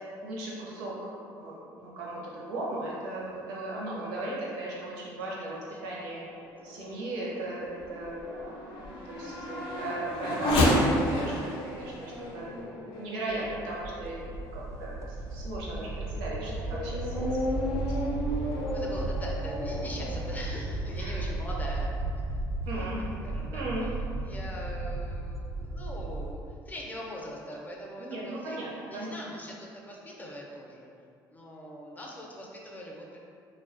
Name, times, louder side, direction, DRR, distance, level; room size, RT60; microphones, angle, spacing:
voice 1, 0.2-6.2 6.6-12.5 13.0-14.3 14.5-17.3 17.6-18.0 21.0-21.1 22.7-23.0 23.5-23.9 28.0-29.4, right 2 dB, 85° right, -5 dB, 0.6 m, -37 dB
voice 2, 5.4-6.5 18.3-21.9 22.7-23.9 24.2-28.6 28.9-30.9 31.3-33.2, equal, 20° left, -2 dB, 0.5 m, -42 dB
Race car auto racing / Accelerating revving vroom, 6.3-14.2 14.8-14.9 15.5-20.3, left 1 dB, 75° left, 0.4 m, -32 dB
sound 1, 13.3-26.3, right 2 dB, 35° right, 0.3 m, -35 dB
2.4 x 2.2 x 2.5 m, 2.4 s
supercardioid pair, 80°, 8 cm